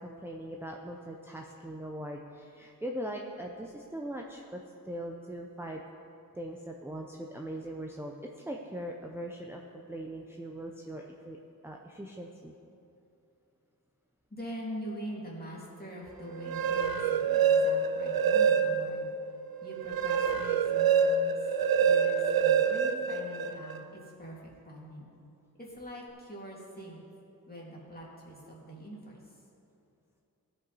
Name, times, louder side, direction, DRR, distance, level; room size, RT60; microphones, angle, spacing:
voice 1, 0.0-5.8 6.3-8.1 8.5-9.6 9.9-11.4 11.6-12.5, right 1 dB, 5° right, 0 dB, 0.6 m, -40 dB
voice 2, 14.3-19.1 19.6-21.5 21.8-24.4 24.6-25.1 25.6-27.0 27.5-29.4, right 1 dB, 25° left, -4 dB, 2.4 m, -43 dB
sound 1, 16.3-19.0 19.5-23.8, right 6 dB, 80° right, 0.5 m, -26 dB
15.5 x 5.5 x 4.1 m, 2.7 s
wide cardioid pair, 65°, 35 cm